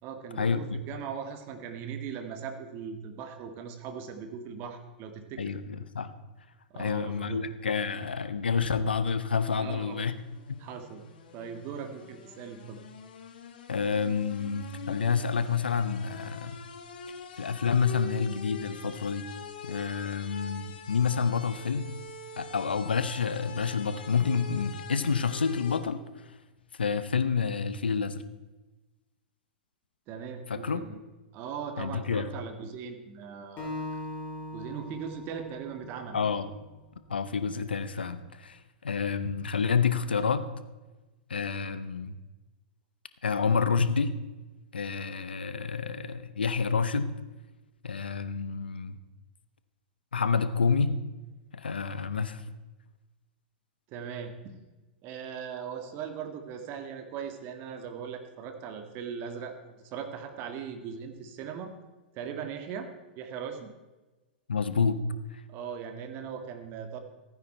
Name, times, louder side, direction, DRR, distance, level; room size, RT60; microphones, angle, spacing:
voice 1, 0.0-5.5 6.7-7.4 9.6-10.0 10.6-11.0 11.3-12.8 30.1-31.0 31.3-33.7 34.5-36.2 53.9-54.6 55.0-61.7 62.1-62.9 63.1-63.7 65.5-67.0, right 7 dB, 45° right, 6 dB, 1.7 m, -39 dB
voice 2, 5.4-6.1 6.7-10.1 10.5-10.6 13.7-16.6 17.4-19.3 19.6-21.9 22.4-26.0 26.8-28.2 30.5-30.8 31.8-32.3 36.1-36.5 37.1-40.5 41.3-42.2 43.2-44.1 44.7-47.1 47.8-49.0 50.1-51.0 51.5-52.4 64.5-65.0 65.3-65.4, left 5 dB, 90° left, 12 dB, 0.8 m, -28 dB
sound 1, 9.3-25.8, left 5 dB, 70° left, 1.6 m, -45 dB
Acoustic guitar, 33.6-36.9, left 1 dB, 30° left, 4.3 m, -40 dB
15.0 x 9.5 x 4.4 m, 1.2 s
hypercardioid pair, 110°, 5 cm